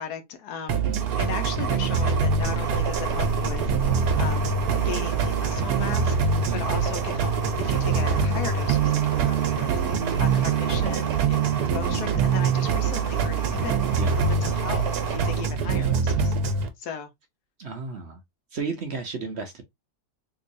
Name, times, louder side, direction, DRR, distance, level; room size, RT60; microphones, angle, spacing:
voice 1, 0.0-0.8 1.2-3.7 4.2-4.5 4.8-7.3 7.6-9.8 10.2-11.5 11.7-13.9 14.2-16.3 16.8-17.1, left 7 dB, 85° left, 1.4 m, -36 dB
sound 1, 0.7-16.7, right 6 dB, 85° right, 1.3 m, -24 dB
voice 2, 0.8-1.2 6.5-6.7 10.7-11.0 14.0-14.2 15.7-15.9 17.6-18.2 18.5-19.6, right 4 dB, 55° right, 0.8 m, -34 dB
sound 2, 1.0-15.4, right 3 dB, 40° right, 1.1 m, -33 dB
3.8 x 3.0 x 2.6 m
omnidirectional pair, 1.6 m